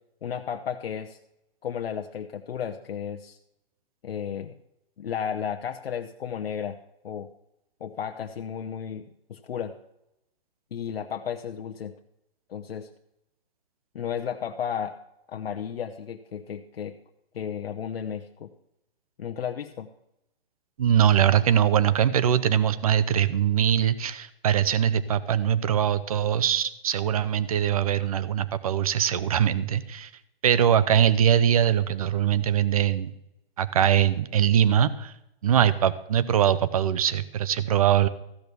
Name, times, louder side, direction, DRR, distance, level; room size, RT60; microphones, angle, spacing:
voice 1, 0.2-1.2 1.6-3.4 4.0-4.5 5.0-6.8 7.0-7.3 7.8-9.7 10.7-11.9 12.5-12.9 13.9-14.9 15.3-16.9 17.3-18.5 19.2-19.9, left 8 dB, 70° left, 5 dB, 0.9 m, -33 dB
voice 2, 20.8-30.1 30.4-33.1 33.6-35.1 35.4-38.1, right 9 dB, 35° right, 16 dB, 0.6 m, -22 dB
14.5 x 6.1 x 6.8 m, 0.84 s
hypercardioid pair, 165°, 31 cm